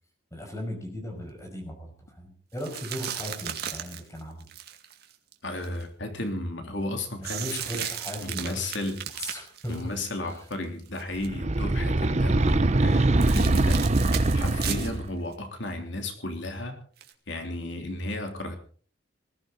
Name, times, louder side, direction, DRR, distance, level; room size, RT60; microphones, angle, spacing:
voice 1, 0.3-4.5 7.2-8.7 9.2-9.9 10.2-10.4 14.4-14.6, equal, 15° left, 3 dB, 5.9 m, -37 dB
sound 1, 2.6-5.8 7.2-10.5 10.9-11.3 13.2-15.0 15.3-15.4 17.0-17.1, right 10 dB, 55° right, 2.1 m, -36 dB
voice 2, 5.4-7.9 8.2-9.0 9.7-14.0 14.3-16.8 17.3-18.6, left 1 dB, 70° left, 4 dB, 3.1 m, -34 dB
sound 2, 11.2-15.1, right 2 dB, 35° right, 0.8 m, -23 dB
20.0 x 15.0 x 4.1 m, 0.43 s
head